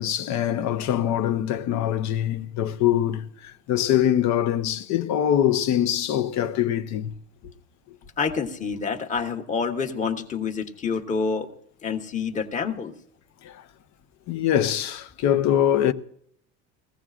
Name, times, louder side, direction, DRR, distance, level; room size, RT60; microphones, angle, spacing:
voice 1, 0.0-7.1 13.4-13.6 14.3-15.9, left 10 dB, 65° left, 0.9 m, -23 dB
voice 2, 8.2-11.5 11.8-12.9, left 5 dB, 25° left, 1.2 m, -27 dB
20.5 x 15.5 x 2.5 m
cardioid pair, 140°, 31 cm